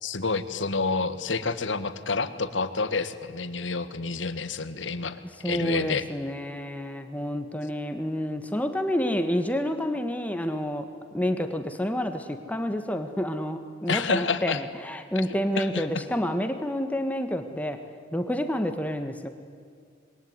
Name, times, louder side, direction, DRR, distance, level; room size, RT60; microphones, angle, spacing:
voice 1, 0.0-5.2 5.4-6.0 13.9-14.6 15.5-15.9, left 4 dB, 85° left, 12 dB, 1.6 m, -28 dB
voice 2, 5.4-10.9 11.1-17.8 18.1-19.3, equal, 10° left, 7 dB, 1.5 m, -29 dB
26.5 x 22.5 x 9.6 m, 2.2 s
head